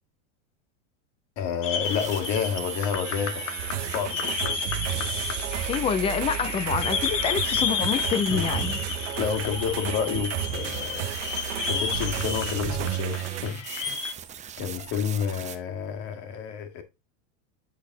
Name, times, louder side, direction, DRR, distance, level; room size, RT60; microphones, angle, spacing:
voice 1, 1.4-3.5 3.8-4.6 8.3-11.1 11.6-13.6 14.6-16.8, left 7 dB, 50° left, 1.9 m, -30 dB
sound 1, 1.6-14.1, left 7 dB, 85° left, 1.8 m, -32 dB
sound 2, 1.8-15.6, right 9 dB, 20° right, 0.7 m, -38 dB
sound 3, 3.6-13.5, right 11 dB, 80° right, 1.1 m, -32 dB
voice 2, 5.7-8.8, left 7 dB, 15° left, 0.3 m, -27 dB
8.5 x 4.1 x 3.8 m
supercardioid pair, 140°, 36 cm